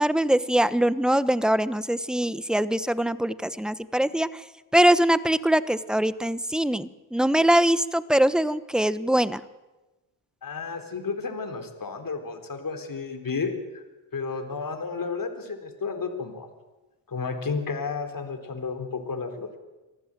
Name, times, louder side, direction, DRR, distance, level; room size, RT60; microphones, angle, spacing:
voice 1, 0.0-4.4 4.7-9.4, right 1 dB, ahead, 15 dB, 1.1 m, -22 dB
voice 2, 10.4-13.8 14.1-16.5 17.1-19.6, left 4 dB, 40° left, 6 dB, 4.1 m, -32 dB
24.5 x 14.5 x 9.2 m, 1.1 s
supercardioid pair, 60°, 49 cm